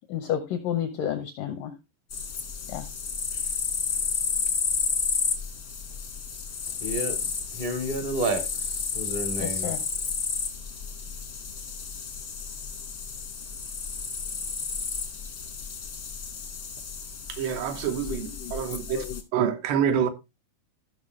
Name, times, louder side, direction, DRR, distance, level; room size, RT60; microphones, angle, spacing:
voice 1, 0.1-1.7 2.7-2.8 9.4-9.8 18.4-18.5 18.9-19.2, left 10 dB, 85° left, 1.9 m, -30 dB
sound 1, 2.1-19.2, left 5 dB, 65° left, 1.0 m, -32 dB
voice 2, 6.8-9.8, right 1 dB, 50° right, 0.5 m, -31 dB
voice 3, 17.3-19.1 19.3-20.1, right 8 dB, 80° right, 3.1 m, -27 dB
15.0 x 6.1 x 3.1 m
omnidirectional pair, 5.0 m